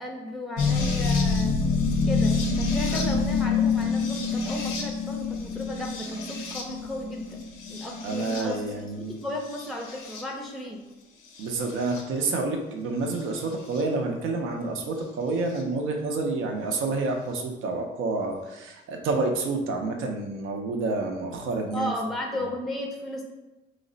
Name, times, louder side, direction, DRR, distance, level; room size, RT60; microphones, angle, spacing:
voice 1, 0.0-1.7 2.0-7.4 7.7-10.8 21.7-23.3, left 1 dB, ahead, 1 dB, 0.4 m, -35 dB
sound 1, 0.6-8.7 9.4-10.2 11.4-12.0 13.7-13.8 15.6-15.7, left 4 dB, 85° left, 0.6 m, -27 dB
voice 2, 2.9-3.2 8.0-9.2 11.4-21.9 22.3-22.5, right 3 dB, 90° right, 3 dB, 0.6 m, -29 dB
3.2 x 2.1 x 3.8 m, 1.0 s
cardioid pair, 90°, 20 cm